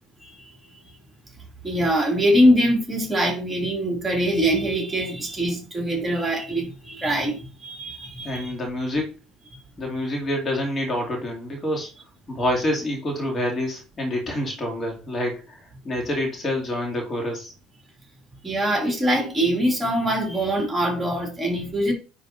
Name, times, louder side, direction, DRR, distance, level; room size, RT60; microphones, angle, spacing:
voice 1, 0.2-0.8 1.6-8.5 18.4-21.9, equal, 15° right, 2.6 m, -23 dB
voice 2, 8.2-9.1 9.8-11.9 12.3-15.6 15.8-17.5, left 1 dB, 30° left, 2.6 m, -27 dB
9.9 x 3.9 x 2.7 m
hypercardioid pair, 65°, 0 cm